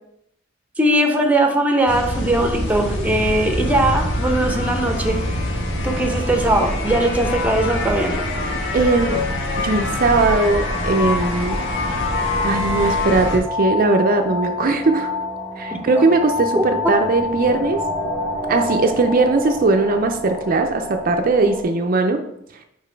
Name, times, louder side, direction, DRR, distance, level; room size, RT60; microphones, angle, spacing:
voice 1, 0.8-5.2 5.8-8.2 16.5-16.9, right 1 dB, 10° right, 3 dB, 0.8 m, -20 dB
sound 1, 1.9-13.4, left 1 dB, 65° left, 1.4 m, -24 dB
sound 2, 6.8-21.6, left 2 dB, 15° left, 1.4 m, -29 dB
voice 2, 8.7-9.3 9.6-11.6 12.4-15.1 15.6-17.8 18.5-22.2, right 3 dB, 45° right, 5 dB, 0.5 m, -19 dB
5.1 x 4.9 x 4.5 m, 0.77 s
head